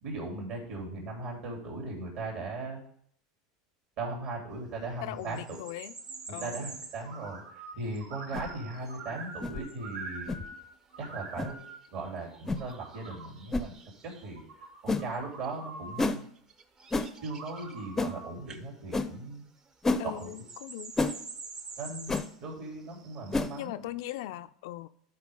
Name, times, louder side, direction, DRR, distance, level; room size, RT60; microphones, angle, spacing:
voice 1, 0.0-2.8 4.0-5.6 6.4-10.4 11.0-11.6 11.9-13.7 14.0-16.2 17.2-19.4 20.0-20.3 21.8-23.8, right 3 dB, 55° right, 3.4 m, -38 dB
voice 2, 5.0-5.9 6.3-6.7 20.0-21.0 23.5-24.9, left 14 dB, 75° left, 0.4 m, -39 dB
sound 1, 5.1-7.0 7.8-14.4 15.1-15.5 16.0-18.1 18.5-18.7 18.9-23.7, right 4 dB, 30° right, 0.7 m, -48 dB
sound 2, 7.0-7.7 8.0-10.6 10.9-11.8 12.3-13.3 14.2-16.1 17.2-18.3, right 3 dB, 90° right, 2.0 m, -45 dB
sound 3, 8.3-8.5 9.4-9.6 10.3-10.4 11.4-11.5 12.5-12.6 13.5-13.7 14.9-15.1 16.0-16.2 16.9-17.1 18.0-18.1 18.9-19.1 19.8-20.0 21.0-21.2 22.1-22.3 23.3-23.5, left 3 dB, 15° left, 0.5 m, -29 dB
11.5 x 4.4 x 3.7 m
supercardioid pair, 115°, 2 cm